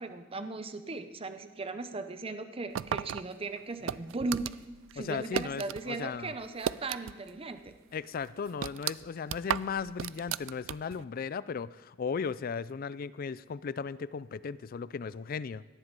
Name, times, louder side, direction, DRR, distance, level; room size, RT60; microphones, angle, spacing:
voice 1, 0.0-4.5 4.9-7.7, right 3 dB, 30° right, 9 dB, 0.7 m, -37 dB
sound 1, 2.7-5.8 6.1-7.4 7.7-7.8 8.2-11.0, right 9 dB, 80° right, 0.3 m, -35 dB
voice 2, 5.0-6.3 7.9-15.6, left 6 dB, 50° left, 18 dB, 0.4 m, -36 dB
17.5 x 11.0 x 5.3 m, 1.2 s
head